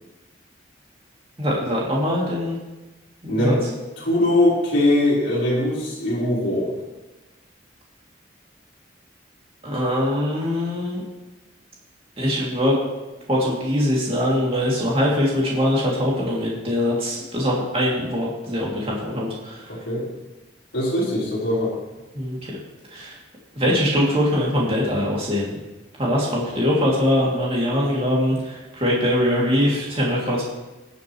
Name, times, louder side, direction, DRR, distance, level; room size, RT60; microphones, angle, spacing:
voice 1, 1.4-2.6 3.2-3.6 9.6-11.1 12.2-12.8 13.3-19.6 22.1-22.5 22.9-23.1 23.6-25.6 26.0-30.4, equal, 30° right, -4 dB, 2.6 m, -22 dB
voice 2, 3.3-3.6 4.0-6.7 19.7-20.0 20.7-21.7, left 1 dB, 70° left, -9 dB, 4.3 m, -21 dB
21.0 x 7.0 x 3.2 m, 1.1 s
head